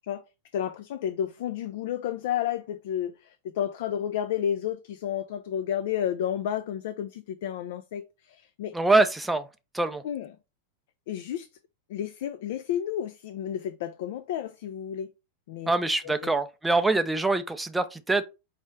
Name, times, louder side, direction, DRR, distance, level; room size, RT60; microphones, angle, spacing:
voice 1, 0.5-8.8 10.0-10.3 11.1-11.5 11.9-15.1 15.5-15.7 16.0-16.3, left 10 dB, 55° left, 0.3 m, -31 dB
voice 2, 8.7-9.5 9.7-10.0 15.7-18.2, right 2 dB, 5° right, 0.5 m, -24 dB
4.9 x 3.1 x 3.2 m
figure-of-eight pair, 90°, 0 cm